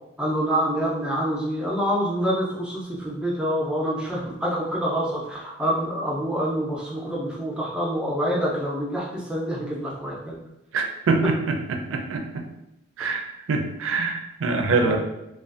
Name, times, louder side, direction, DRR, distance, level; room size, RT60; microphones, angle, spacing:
voice 1, 0.2-10.4 14.7-15.0, equal, 5° right, -5 dB, 0.4 m, -26 dB
voice 2, 10.7-12.5 13.0-13.2 13.5-15.0, right 3 dB, 75° right, 4 dB, 0.4 m, -24 dB
2.4 x 2.3 x 2.4 m, 0.91 s
head